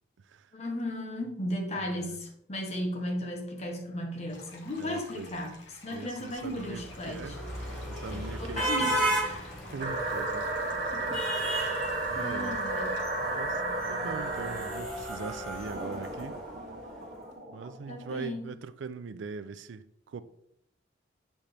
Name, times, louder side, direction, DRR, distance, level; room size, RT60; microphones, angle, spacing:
voice 1, 0.5-7.4 8.1-9.5 10.7-13.0 17.9-18.5, left 1 dB, 35° left, 1.0 m, -36 dB
voice 2, 1.8-2.2 4.8-5.5 5.9-6.8 7.1-7.4 7.7-9.1 9.7-10.5 11.0-11.3 12.1-12.6 13.2-13.6 13.9-16.4 17.5-20.2, right 5 dB, 85° right, 0.4 m, -41 dB
sound 1, 4.3-13.0, left 3 dB, 85° left, 1.1 m, -51 dB
sound 2, 6.5-16.8, right 1 dB, ahead, 1.9 m, -35 dB
sound 3, 9.8-14.8 15.7-18.1, right 2 dB, 45° right, 1.0 m, -33 dB
7.3 x 4.2 x 3.3 m
head